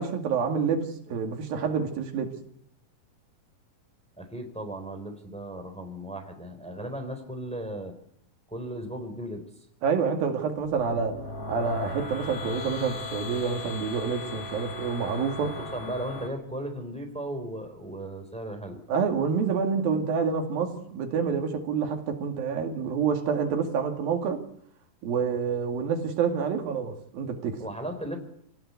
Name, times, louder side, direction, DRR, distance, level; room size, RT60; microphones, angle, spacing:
voice 1, 0.0-2.3 9.8-15.5 18.9-24.4 25.0-27.6, right 6 dB, 85° right, 4.0 m, -28 dB
voice 2, 4.2-7.9 8.5-9.4 15.7-18.8 27.6-28.2, right 1 dB, ahead, 3.4 m, -36 dB
sound 1, 10.6-16.3, left 2 dB, 20° left, 4.1 m, -37 dB
27.0 x 18.0 x 8.3 m
omnidirectional pair, 4.0 m